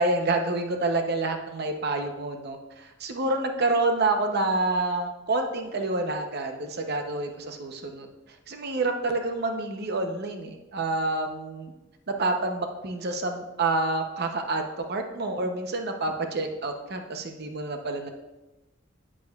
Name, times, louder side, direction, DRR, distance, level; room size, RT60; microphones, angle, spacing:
voice 1, 0.0-8.1 8.5-11.7 12.2-14.6 14.9-18.1, right 2 dB, 55° right, 5 dB, 0.7 m, -28 dB
9.5 x 8.5 x 2.4 m, 1.1 s
head